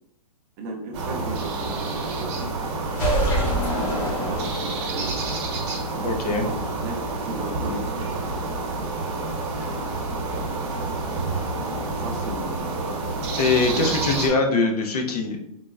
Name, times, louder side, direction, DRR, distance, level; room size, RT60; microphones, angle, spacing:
voice 1, 0.6-2.5 3.7-5.4 6.3-7.0 7.3-8.4 11.9-12.8 13.7-14.0, right 2 dB, 25° right, 0 dB, 0.4 m, -35 dB
sound 1, 0.9-14.3, right 3 dB, 50° right, 0.9 m, -29 dB
sound 2, 2.9-5.0, right 1 dB, 35° left, 1.0 m, -25 dB
voice 2, 6.0-6.4 13.4-15.4, left 3 dB, 80° left, 3 dB, 0.7 m, -22 dB
3.8 x 2.0 x 2.3 m, 0.83 s
hypercardioid pair, 160°, 19 cm